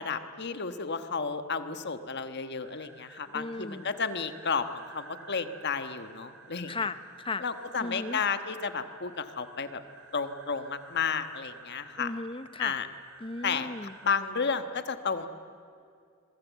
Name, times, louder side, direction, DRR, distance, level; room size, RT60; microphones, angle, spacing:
voice 1, 0.0-6.9 7.4-9.8 10.1-12.1 12.6-12.9 13.4-13.7 14.0-15.3, left 5 dB, 55° left, 9 dB, 1.4 m, -32 dB
sound 1, 2.6-14.2, right 4 dB, 70° right, 4.9 m, -52 dB
voice 2, 3.3-3.8 6.7-7.4 7.8-8.2 12.0-12.7 13.2-13.9, left 3 dB, 25° left, 12 dB, 0.8 m, -36 dB
26.0 x 23.0 x 8.2 m, 2.4 s
head